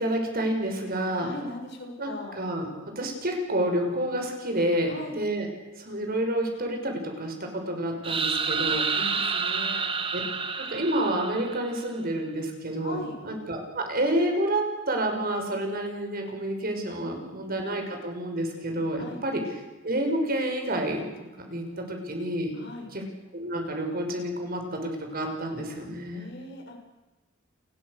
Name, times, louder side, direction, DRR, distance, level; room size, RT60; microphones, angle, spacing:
voice 1, 0.0-1.3 2.0-2.1 2.4-2.7 3.0-5.5 5.8-8.8 10.1-10.2 10.6-13.0 13.2-19.4 19.8-21.0 21.4-22.5 22.9-23.0 23.3-26.3, right 1 dB, 50° right, 3 dB, 5.9 m, -29 dB
voice 2, 1.1-2.4 4.8-5.2 8.6-9.8 12.8-13.2 16.9-17.4 18.9-19.2 22.5-22.9 26.1-26.7, left 1 dB, 60° left, 2 dB, 6.8 m, -40 dB
sound 1, 8.0-11.9, right 5 dB, 25° right, 1.8 m, -29 dB
30.0 x 21.5 x 6.7 m, 1.1 s
head